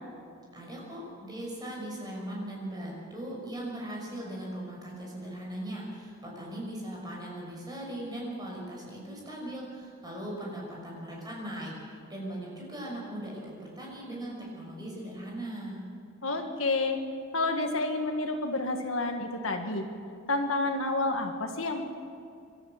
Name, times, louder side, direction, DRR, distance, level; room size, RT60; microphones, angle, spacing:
voice 1, 0.5-15.8, right 1 dB, 20° right, -3 dB, 6.0 m, -39 dB
voice 2, 16.2-17.0 17.3-19.8 20.3-21.8, left 2 dB, 70° left, 4 dB, 1.8 m, -29 dB
26.0 x 13.0 x 7.8 m, 2.4 s
head